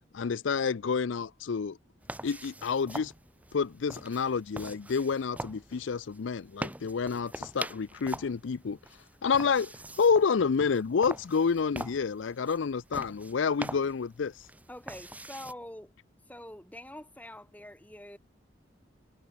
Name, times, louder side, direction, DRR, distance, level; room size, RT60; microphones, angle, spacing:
voice 1, 0.1-1.8 2.2-3.1 3.5-8.8 9.2-9.7 10.0-14.3, left 5 dB, 75° left, 0.5 m, -28 dB
sound 1, 2.0-15.5, right 1 dB, 10° right, 1.6 m, -43 dB
voice 2, 14.7-15.9 16.3-18.2, left 1 dB, 10° left, 2.4 m, -45 dB
head